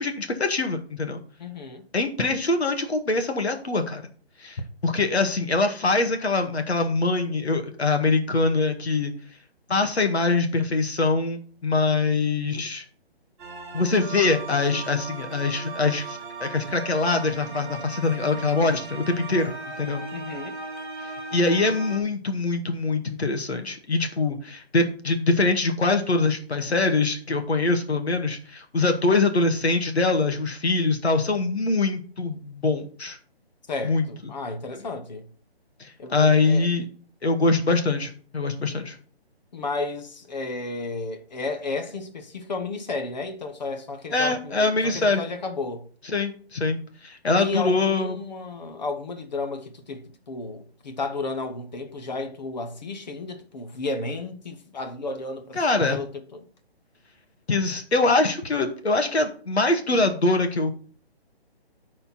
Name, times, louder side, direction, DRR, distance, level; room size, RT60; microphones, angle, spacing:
voice 1, 0.0-1.2 1.9-4.0 4.4-9.1 9.7-12.8 13.7-20.0 21.3-33.2 33.8-34.1 35.8-36.9 37.2-39.0 44.1-45.2 46.1-48.2 55.5-56.0 57.5-60.7, left 3 dB, 85° left, 1.9 m, -23 dB
voice 2, 1.4-1.9 20.1-20.6 33.7-35.2 36.0-36.7 39.5-45.9 47.4-56.4, left 3 dB, 40° left, 1.3 m, -33 dB
sound 1, 13.4-22.0, right 4 dB, 10° right, 1.4 m, -37 dB
12.5 x 4.4 x 4.4 m
hypercardioid pair, 165°, 32 cm